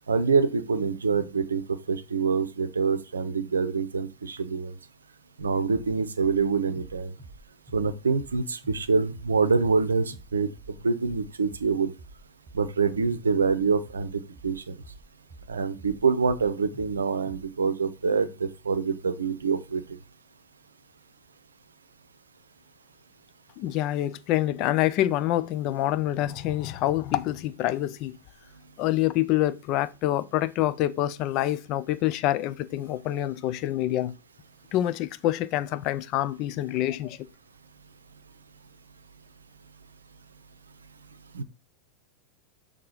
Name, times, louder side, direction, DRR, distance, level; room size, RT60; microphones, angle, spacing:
voice 1, 0.1-4.7 5.4-7.1 7.7-10.5 10.8-11.9 12.5-14.8 15.5-19.8 41.3-41.4, right 5 dB, 70° right, 0.6 m, -26 dB
sound 1, 5.7-5.9 6.2-8.4 8.6-8.9 9.1-9.3 9.6-9.8 10.1-10.3 10.6-16.0 16.3-17.0 17.2-17.4, right 2 dB, 5° right, 3.6 m, -48 dB
voice 2, 23.6-28.2 28.8-34.1 34.7-37.2, left 14 dB, 40° left, 0.5 m, -26 dB
6.7 x 3.6 x 5.4 m
figure-of-eight pair, 90°, 0 cm